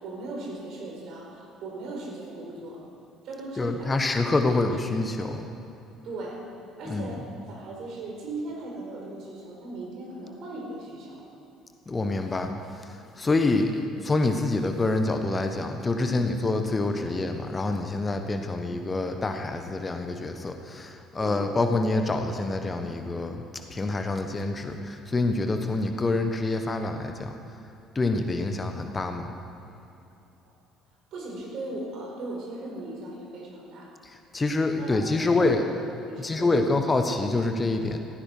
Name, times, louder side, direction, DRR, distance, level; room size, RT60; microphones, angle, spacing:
voice 1, 0.0-2.8 3.2-4.0 6.0-6.5 6.8-11.2 16.0-16.3 21.2-21.4 30.4-30.5 31.1-33.9 34.8-35.7 36.1-36.7, right 2 dB, 55° right, -1 dB, 4.3 m, -38 dB
voice 2, 3.6-5.5 6.9-7.1 11.9-12.5 13.2-13.7 14.0-23.4 23.7-27.3 27.9-29.3 34.3-35.6 36.2-38.0, left 2 dB, 25° left, 6 dB, 1.3 m, -26 dB
17.0 x 15.0 x 4.6 m, 2.8 s
figure-of-eight pair, 55°, 0 cm